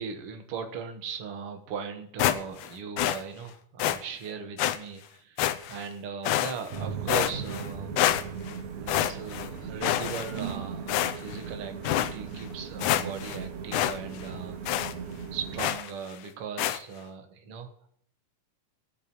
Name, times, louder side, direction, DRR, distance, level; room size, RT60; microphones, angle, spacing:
voice 1, 0.0-8.0 8.8-14.8 15.3-17.7, right 6 dB, 55° right, 6 dB, 1.9 m, -38 dB
sound 1, 2.2-2.7 3.0-3.2 3.8-4.0 4.6-4.8 5.4-5.9 6.3-6.8 7.1-7.7 8.0-8.5 8.9-9.5 9.8-10.5 10.9-11.4 11.9-12.1 12.5-12.6 12.8-13.4 13.7-14.0 14.2-14.3 14.7-14.9 15.6-15.9 16.6-16.8, left 13 dB, 85° left, 2.1 m, -27 dB
sound 2, 6.7-15.7, right 6 dB, 80° right, 2.8 m, -38 dB
19.0 x 8.2 x 3.0 m, 0.65 s
omnidirectional pair, 3.5 m